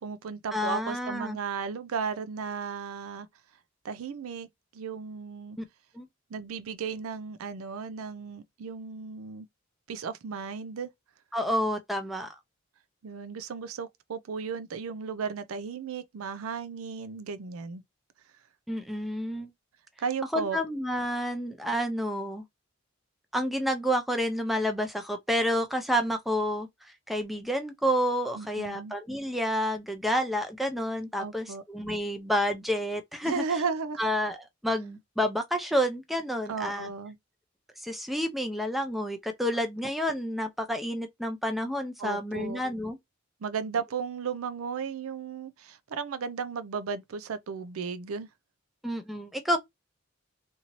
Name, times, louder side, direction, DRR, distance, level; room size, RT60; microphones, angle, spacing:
voice 1, 0.0-3.3 3.8-5.6 6.3-9.5 9.9-10.9 13.0-17.8 20.0-20.6 28.4-28.9 31.2-31.6 33.2-34.0 36.5-37.2 42.0-42.6 43.4-48.3, right 5 dB, 75° right, 0.4 m, -35 dB
voice 2, 0.5-1.4 5.6-5.7 5.9-6.1 11.3-12.3 18.7-19.5 20.3-22.4 23.3-33.4 34.0-36.9 37.8-43.0 48.8-49.6, equal, ahead, 0.4 m, -29 dB
2.7 x 2.6 x 2.9 m
head